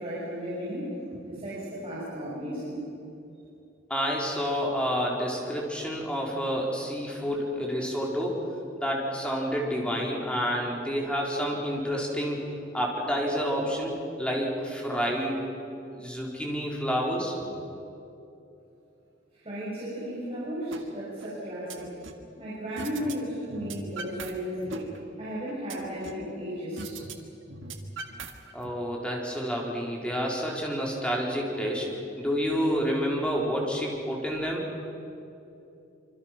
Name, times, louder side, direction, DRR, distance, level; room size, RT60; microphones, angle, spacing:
voice 1, 0.0-2.9 19.4-21.9 22.4-24.9 25.2-27.0, equal, 30° right, -9 dB, 6.8 m, -34 dB
voice 2, 3.9-8.5 8.8-12.5 12.7-13.9 14.2-15.5 15.9-17.3 28.5-31.9 32.2-34.7, equal, 5° left, -2 dB, 4.2 m, -29 dB
sound 1, 20.7-20.8 21.2-22.3 22.8-23.1 23.4-24.3 24.6-26.3 26.8-27.1 27.4-28.7, right 3 dB, 75° right, 1.9 m, -39 dB
26.0 x 25.0 x 6.0 m, 2.8 s
head